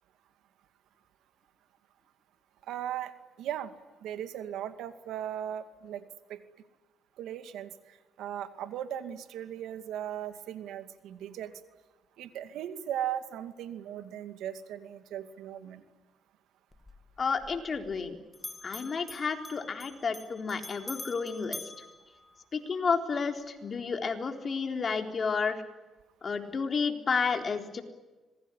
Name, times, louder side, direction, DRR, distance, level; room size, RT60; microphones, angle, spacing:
voice 1, 2.7-3.1 3.4-3.7 4.0-6.0 6.3-6.4 7.2-7.7 8.2-11.5 12.2-15.8, right 10 dB, 85° right, 10 dB, 2.3 m, -37 dB
Bell, 16.7-18.1 18.3-22.8, left 2 dB, 20° left, 2.3 m, -46 dB
voice 2, 17.2-18.2 18.6-21.6 22.5-25.6 26.2-27.8, left 5 dB, 40° left, 5 dB, 3.8 m, -31 dB
26.0 x 21.5 x 10.0 m, 1.2 s
cardioid pair, 90°, 0 cm